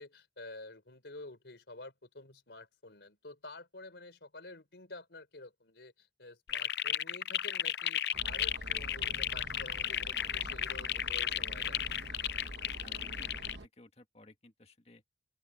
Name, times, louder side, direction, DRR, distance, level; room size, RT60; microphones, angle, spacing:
voice 1, 0.0-11.8, left 2 dB, 85° left, 4.1 m, -50 dB
sound 1, 6.5-13.6, left 11 dB, 70° left, 0.5 m, -34 dB
sound 2, 8.1-13.7, right 1 dB, 85° right, 1.3 m, -46 dB
voice 2, 12.8-15.0, left 1 dB, 35° left, 2.0 m, -58 dB
open air
head